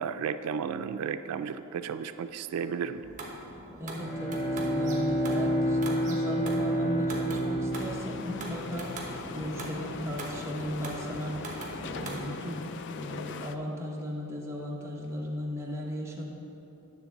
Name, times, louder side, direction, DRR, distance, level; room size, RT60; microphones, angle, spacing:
voice 1, 0.0-3.0, right 6 dB, 90° right, 10 dB, 0.3 m, -33 dB
sound 1, 2.9-12.3, right 1 dB, 35° right, 1.1 m, -41 dB
Bowed string instrument, 3.8-9.4, equal, 35° left, 1.8 m, -30 dB
voice 2, 3.8-8.9 9.3-11.4 11.8-16.3, equal, 15° right, -3 dB, 1.0 m, -36 dB
sound 2, 7.7-13.6, left 5 dB, 55° left, 0.4 m, -41 dB
9.7 x 3.5 x 7.1 m, 2.9 s
head